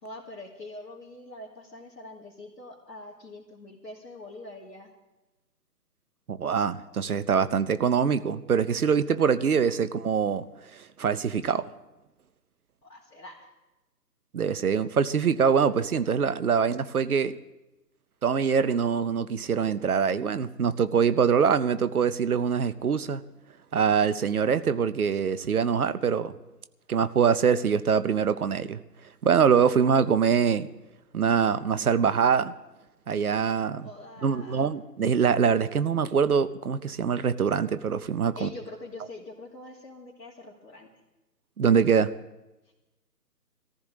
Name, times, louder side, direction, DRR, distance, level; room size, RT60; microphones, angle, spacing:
voice 1, 0.0-4.9 9.3-9.7 12.8-13.5 33.8-34.7 38.3-40.9, left 2 dB, 70° left, -6 dB, 2.7 m, -44 dB
voice 2, 6.3-10.5 10.7-11.7 14.3-17.3 18.2-23.2 23.7-26.4 26.9-28.8 29.2-30.7 31.1-32.5 33.1-33.9 34.2-38.5 41.6-42.1, right 6 dB, 60° right, 14 dB, 0.9 m, -24 dB
21.5 x 14.5 x 3.8 m, 1.0 s
figure-of-eight pair, 140°, 48 cm